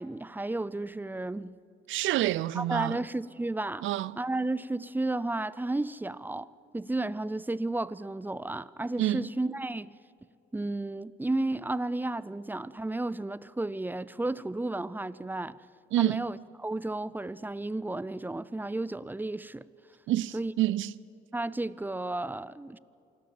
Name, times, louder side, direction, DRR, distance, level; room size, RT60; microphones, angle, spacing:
voice 1, 0.0-1.6 2.6-3.9 4.2-6.5 6.7-9.9 10.5-15.6 16.0-19.6 20.3-20.5 21.3-22.8, right 2 dB, 10° right, 0.4 m, -33 dB
voice 2, 1.9-3.0 3.8-4.2 9.0-9.3 15.9-16.3 20.1-20.9, right 14 dB, 80° right, 0.4 m, -27 dB
27.0 x 13.0 x 7.7 m
cardioid pair, 90°, 20 cm